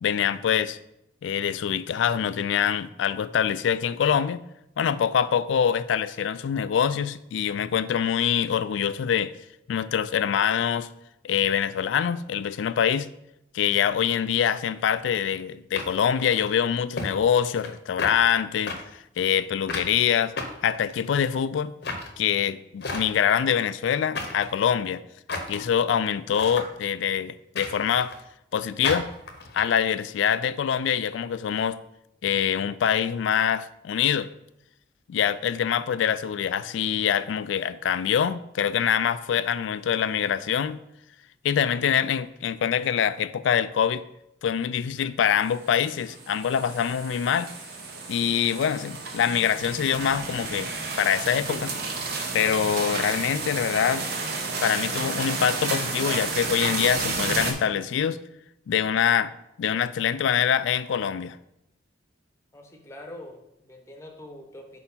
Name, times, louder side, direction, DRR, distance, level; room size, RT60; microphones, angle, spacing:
voice 1, 0.0-0.8 1.2-4.4 4.8-9.3 9.7-10.9 11.2-13.1 13.5-18.7 19.2-20.3 20.6-21.7 22.2-25.0 25.5-28.1 28.5-29.1 29.5-31.8 32.2-34.3 35.1-40.8 41.4-44.0 44.4-47.5 48.1-50.7 51.0-51.7 52.3-54.1 54.6-58.2 58.7-59.3 59.6-61.4, left 8 dB, 75° left, 0.3 m, -24 dB
sound 1, 14.8-14.9 15.7-16.5 17.0-17.1 17.4-17.7 18.0-18.2 18.7-18.8 19.7-19.9 20.4-21.2 21.8-22.1 22.8-23.3 24.1-24.5 25.3-25.7 26.3-26.7 27.6-28.2 28.8-29.6, left 3 dB, 60° left, 0.8 m, -33 dB
sound 2, 45.5-57.5, right 4 dB, 55° right, 0.9 m, -31 dB
voice 2, 62.5-64.8, left 1 dB, 15° left, 0.7 m, -44 dB
4.5 x 4.4 x 5.5 m
head